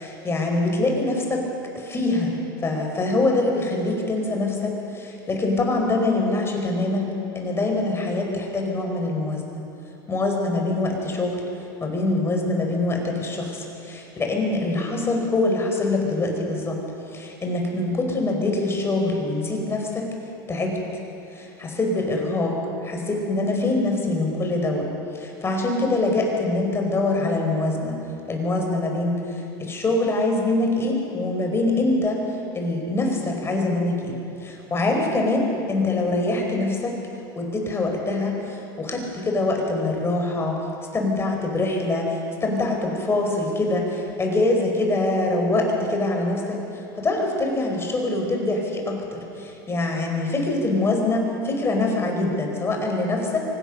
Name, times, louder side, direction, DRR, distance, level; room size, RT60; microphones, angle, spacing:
voice 1, 0.0-1.5 1.7-2.3 2.6-7.1 7.3-9.6 10.1-11.4 11.8-16.8 17.1-20.1 20.5-20.8 21.3-22.5 22.8-24.9 25.1-27.9 28.3-32.2 32.5-37.0 37.3-40.6 40.9-46.6 47.0-53.4, left 2 dB, 20° left, 1 dB, 5.0 m, -24 dB
24.5 x 16.0 x 6.7 m, 2.7 s
hypercardioid pair, 105°, 12 cm